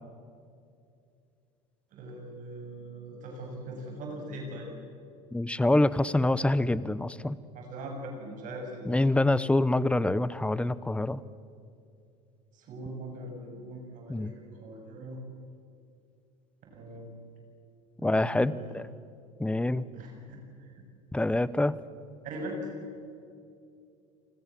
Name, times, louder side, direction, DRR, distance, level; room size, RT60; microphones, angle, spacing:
voice 1, 1.9-4.7 7.5-9.0 12.5-15.2 16.7-17.2 18.0-18.7 19.9-20.7 22.2-22.7, right 1 dB, 55° right, 2 dB, 7.5 m, -41 dB
voice 2, 5.3-7.4 8.9-11.2 14.1-14.3 18.0-18.8 19.4-19.9 21.1-21.8, left 2 dB, 5° left, 17 dB, 0.9 m, -26 dB
29.5 x 21.0 x 7.6 m, 2.5 s
supercardioid pair, 95°, 16 cm